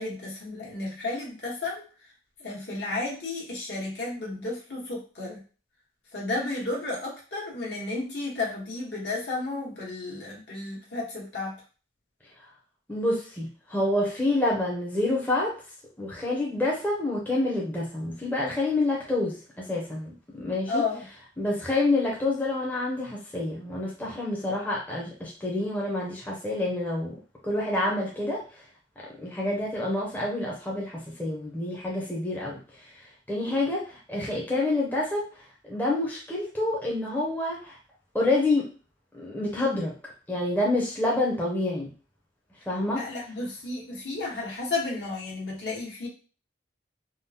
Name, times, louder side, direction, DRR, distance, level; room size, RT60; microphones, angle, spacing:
voice 1, 0.0-1.9 2.4-5.4 6.1-11.6 20.7-21.0 42.9-46.1, left 3 dB, 70° left, -3 dB, 1.2 m, -32 dB
voice 2, 12.9-15.6 16.0-19.4 19.7-20.8 21.4-27.1 27.4-28.4 29.2-32.6 33.3-35.3 35.6-37.8 38.1-38.7 39.1-39.9 40.3-41.9 42.7-43.0, left 2 dB, 10° left, -4 dB, 0.5 m, -27 dB
3.5 x 2.0 x 2.7 m, 0.36 s
head